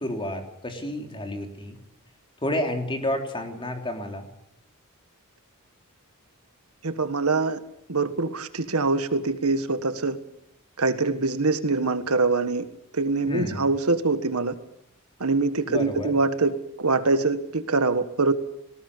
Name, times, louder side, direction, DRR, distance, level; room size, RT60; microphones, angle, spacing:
voice 1, 0.0-1.8 2.4-4.3 13.3-13.7 15.7-16.2, left 1 dB, 25° left, 4 dB, 3.4 m, -30 dB
voice 2, 6.8-7.6 7.9-10.2 10.8-12.6 12.9-14.5 15.2-18.3, right 3 dB, 75° right, 10 dB, 1.6 m, -24 dB
19.0 x 18.0 x 8.5 m, 0.73 s
head